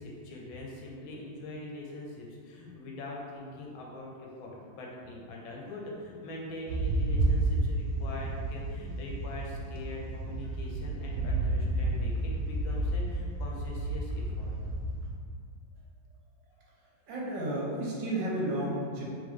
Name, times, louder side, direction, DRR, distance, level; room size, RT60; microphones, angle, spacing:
voice 1, 0.0-14.5, left 2 dB, 75° left, -2 dB, 1.4 m, -42 dB
sound 1, 6.7-15.1, right 2 dB, 90° right, 1.5 m, -31 dB
voice 2, 17.1-19.0, right 1 dB, 70° right, -4 dB, 1.4 m, -32 dB
3.7 x 3.2 x 3.5 m, 2.1 s
omnidirectional pair, 2.2 m